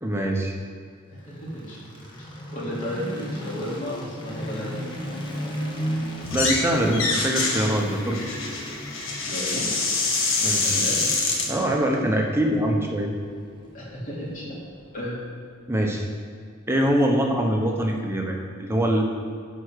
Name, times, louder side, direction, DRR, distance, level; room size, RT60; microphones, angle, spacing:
voice 1, 0.0-0.5 6.3-8.2 10.4-10.8 11.5-13.1 15.7-16.1 16.7-19.0, right 1 dB, 10° right, 0 dB, 1.1 m, -23 dB
voice 2, 1.1-1.8 2.5-5.0 6.8-7.0 9.2-9.8 10.6-11.1 13.7-14.6 14.9-15.2, equal, 40° left, -5 dB, 2.9 m, -33 dB
sound 1, 1.2-15.3, equal, 25° left, 1.4 m, -36 dB
sound 2, 6.2-6.6 6.9-11.5, left 3 dB, 75° left, 1.6 m, -25 dB
11.5 x 5.0 x 6.6 m, 2.3 s
head